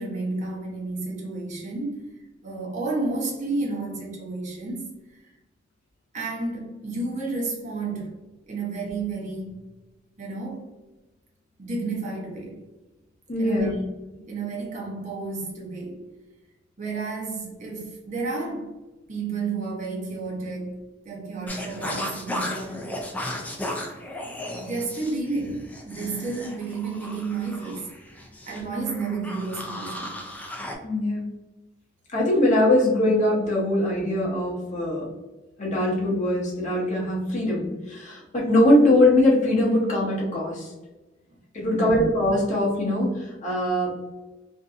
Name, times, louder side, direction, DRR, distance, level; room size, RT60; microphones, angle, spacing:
voice 1, 0.0-5.3 6.1-8.2 8.5-9.6 10.2-10.7 11.6-12.6 13.4-13.8 14.1-16.0 16.8-18.7 19.1-22.9 24.5-27.9 28.4-30.2 41.6-42.0, right 3 dB, 40° right, -3 dB, 0.8 m, -31 dB
voice 2, 13.3-13.7 30.8-31.3 32.1-35.1 35.6-40.7 41.5-44.0, left 1 dB, 40° left, -4 dB, 0.7 m, -22 dB
sound 1, 21.5-30.7, left 1 dB, 10° left, 0.3 m, -35 dB
2.6 x 2.6 x 2.3 m, 1.1 s
head